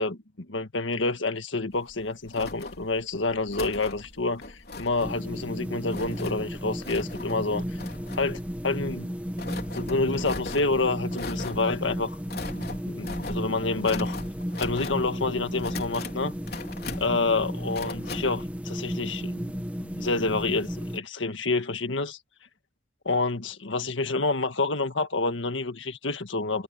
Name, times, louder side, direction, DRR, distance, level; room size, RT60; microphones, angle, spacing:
voice 1, 0.0-4.4 4.8-7.8 8.2-9.1 9.7-14.2 14.6-16.3 17.0-19.4 19.8-22.2 23.0-26.6, left 3 dB, 90° left, 1.7 m, -28 dB
sound 1, 1.7-18.5, left 3 dB, 55° left, 3.9 m, -40 dB
sound 2, 5.0-21.0, equal, 10° right, 1.9 m, -34 dB
head